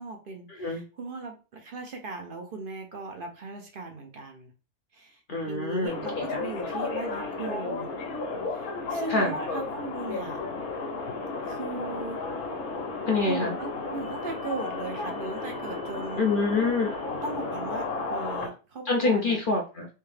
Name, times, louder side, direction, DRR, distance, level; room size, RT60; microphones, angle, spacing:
voice 1, 0.0-4.5 4.9-7.9 8.5-10.4 11.4-12.2 13.3-16.2 17.2-19.4, right 3 dB, 50° right, 3 dB, 0.7 m, -38 dB
voice 2, 5.3-6.0 6.3-6.4 9.1-9.3 13.1-13.5 16.2-16.9 18.9-19.9, left 3 dB, 55° left, 0 dB, 0.6 m, -26 dB
sound 1, 5.9-18.5, left 3 dB, 80° left, 1.3 m, -33 dB
3.4 x 2.8 x 3.2 m, 0.33 s
omnidirectional pair, 1.5 m